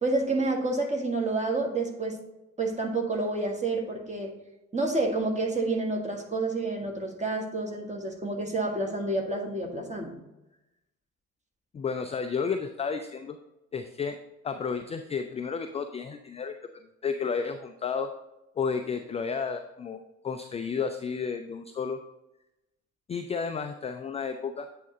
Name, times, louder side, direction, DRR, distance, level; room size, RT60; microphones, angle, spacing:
voice 1, 0.0-2.2 2.6-4.3 4.7-10.2, right 2 dB, 15° right, 2 dB, 1.5 m, -29 dB
voice 2, 11.7-13.4 13.7-14.2 14.4-16.6 17.0-18.1 18.6-22.0 23.1-24.7, left 5 dB, 15° left, 7 dB, 0.3 m, -32 dB
8.3 x 3.8 x 4.1 m, 0.93 s
figure-of-eight pair, 50°, 40 cm